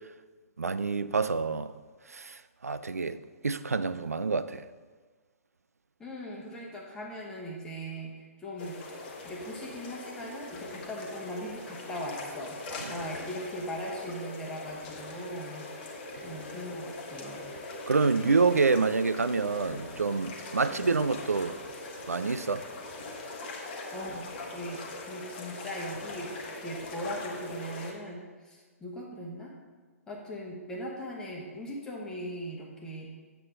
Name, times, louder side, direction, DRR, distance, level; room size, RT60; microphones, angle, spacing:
voice 1, 0.6-1.8 2.1-4.6 12.8-13.0 17.9-21.6 22.1-22.7, right 4 dB, 75° right, 0.4 m, -27 dB
voice 2, 6.0-8.8 9.2-12.6 12.9-15.7 16.2-17.4 20.6-21.0 23.9-29.5 30.1-33.1, equal, 10° left, 1.2 m, -39 dB
sound 1, 8.6-27.9, left 2 dB, 35° left, 1.0 m, -41 dB
7.7 x 6.9 x 3.8 m
figure-of-eight pair, 125°, 8 cm